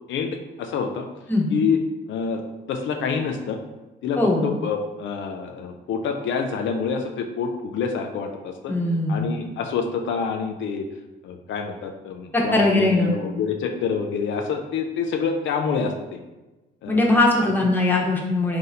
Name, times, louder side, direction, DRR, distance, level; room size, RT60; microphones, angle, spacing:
voice 1, 0.1-1.1 1.5-2.4 2.7-3.6 4.0-8.7 9.1-10.9 11.2-16.2 16.8-17.0 17.4-17.7, left 5 dB, 75° left, 4 dB, 0.4 m, -27 dB
voice 2, 8.7-9.2 12.3-13.2 16.9-18.6, left 2 dB, 10° left, -2 dB, 0.9 m, -20 dB
3.8 x 2.7 x 4.1 m, 1.1 s
cardioid pair, 90°, 20 cm